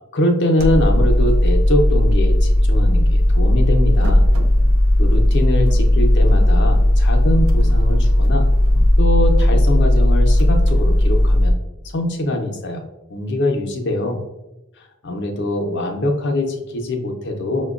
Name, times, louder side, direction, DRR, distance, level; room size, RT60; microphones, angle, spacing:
voice 1, 0.1-4.3 5.0-8.5 9.0-11.6 11.9-12.8 13.1-14.2 14.8-17.7, left 1 dB, 55° left, 3 dB, 0.6 m, -23 dB
sound 1, 0.6-11.5, left 1 dB, 90° right, 0.5 m, -15 dB
5.7 x 2.2 x 2.4 m, 1.0 s
head